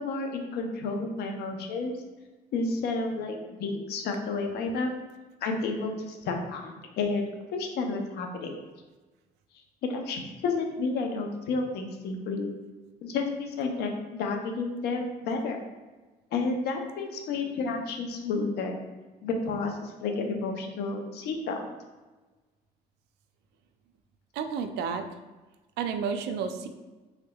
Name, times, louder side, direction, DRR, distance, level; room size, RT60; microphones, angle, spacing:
voice 1, 0.0-1.9 2.5-4.9 5.4-7.2 7.5-8.5 9.8-12.5 13.0-15.6 16.3-18.8 19.2-21.7, left 3 dB, 75° left, 3 dB, 0.6 m, -31 dB
voice 2, 24.3-25.0 25.8-26.7, right 6 dB, 80° right, 8 dB, 0.4 m, -31 dB
3.5 x 3.4 x 2.2 m, 1.2 s
cardioid pair, 110°, 17 cm